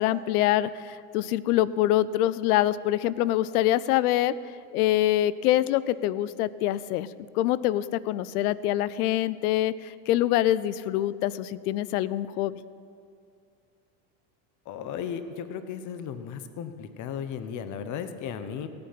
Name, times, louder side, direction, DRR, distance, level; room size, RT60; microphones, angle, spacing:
voice 1, 0.0-4.4 4.7-7.1 7.3-12.6, left 13 dB, 85° left, 18 dB, 0.6 m, -25 dB
voice 2, 14.7-18.7, left 7 dB, 40° left, 10 dB, 0.9 m, -35 dB
16.5 x 8.7 x 5.8 m, 2.4 s
supercardioid pair, 115°, 44 cm